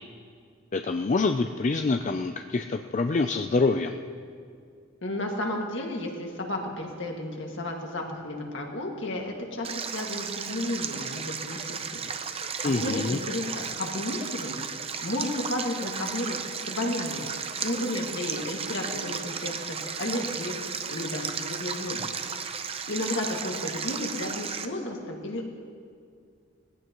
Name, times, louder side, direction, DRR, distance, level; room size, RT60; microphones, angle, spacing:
voice 1, 0.7-4.0 12.6-13.2, left 3 dB, 35° left, 6 dB, 0.4 m, -26 dB
voice 2, 5.0-12.0 12.3-14.6 15.0-17.2 17.6-20.6 20.9-22.1 22.4-25.4, left 1 dB, 60° left, 0 dB, 2.0 m, -33 dB
Stream, 9.6-24.7, right 6 dB, 30° right, 0.6 m, -34 dB
21.0 x 16.0 x 3.0 m, 2.2 s
head